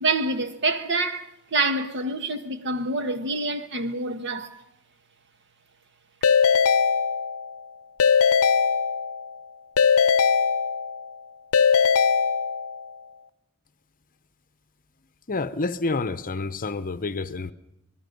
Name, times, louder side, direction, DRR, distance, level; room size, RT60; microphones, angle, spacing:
voice 1, 0.0-4.6, right 2 dB, 55° right, 1.6 m, -27 dB
Keyboard (musical) / Ringtone, 6.2-7.6 8.0-9.3 9.8-11.1 11.5-12.9, left 6 dB, 70° left, 0.7 m, -20 dB
voice 2, 15.3-17.5, left 3 dB, 40° left, 0.8 m, -28 dB
26.5 x 19.5 x 5.3 m
head